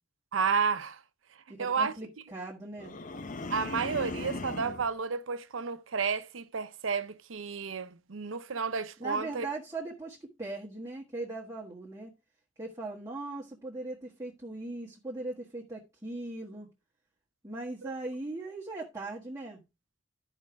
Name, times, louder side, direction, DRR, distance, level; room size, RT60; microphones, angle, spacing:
voice 1, 0.3-1.0 1.6-1.9 3.5-9.5 17.8-17.9, right 5 dB, 80° right, 0.7 m, -31 dB
voice 2, 1.5-2.9 9.0-12.1 12.6-16.7 17.4-19.6, right 2 dB, 15° right, 1.4 m, -39 dB
sound 1, 2.8-4.9, left 3 dB, 40° left, 0.7 m, -38 dB
13.0 x 5.0 x 3.4 m
head